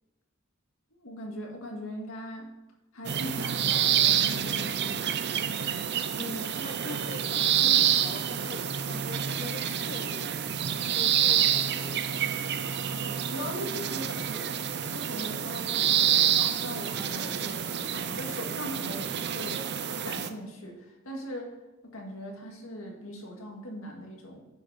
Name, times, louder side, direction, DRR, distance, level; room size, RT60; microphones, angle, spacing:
voice 1, 1.0-2.5 2.9-5.2 12.9-14.6 14.9-19.7 20.0-21.5 21.8-24.4, equal, 85° left, 2.1 m, -40 dB
sound 1, 3.0-20.3, right 9 dB, 55° right, 0.6 m, -28 dB
voice 2, 6.1-10.4 10.9-12.6, left 4 dB, 35° left, 0.4 m, -43 dB
9.9 x 6.0 x 5.7 m
head